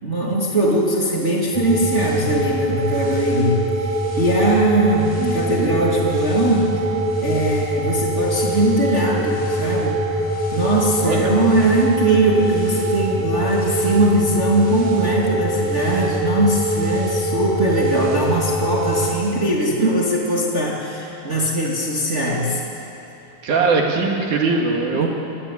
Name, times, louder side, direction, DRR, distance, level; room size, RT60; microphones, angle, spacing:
voice 1, 0.0-6.9 7.2-10.2 10.5-22.6 24.9-25.1, right 1 dB, 25° right, -3 dB, 1.9 m, -20 dB
sound 1, 1.5-19.1, right 1 dB, ahead, 3.4 m, -23 dB
voice 2, 5.2-5.8 11.0-11.3 23.4-25.1, right 4 dB, 60° right, 0 dB, 3.3 m, -21 dB
22.0 x 15.5 x 9.9 m, 2.9 s
omnidirectional pair, 4.1 m